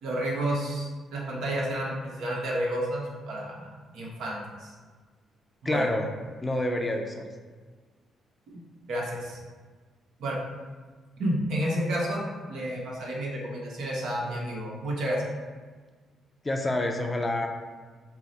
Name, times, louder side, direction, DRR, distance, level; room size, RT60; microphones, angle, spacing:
voice 1, 0.0-4.7 5.6-5.9 8.9-9.4 10.2-10.3 11.2-15.2, right 1 dB, 80° right, -3 dB, 1.0 m, -31 dB
voice 2, 5.6-6.1 6.4-7.2 16.4-17.5, left 1 dB, 20° left, 3 dB, 0.5 m, -27 dB
4.6 x 2.0 x 4.0 m, 1.4 s
cardioid pair, 90°, 0 cm